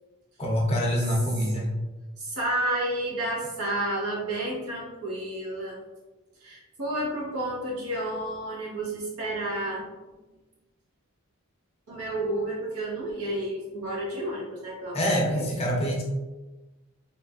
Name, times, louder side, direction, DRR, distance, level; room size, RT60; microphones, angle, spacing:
voice 1, 0.4-1.7 14.9-16.0, equal, 30° left, -2 dB, 0.5 m, -25 dB
voice 2, 2.2-5.8 6.4-9.9 11.9-15.5, right 1 dB, 90° right, -4 dB, 0.9 m, -31 dB
3.0 x 2.4 x 2.2 m, 1.2 s
head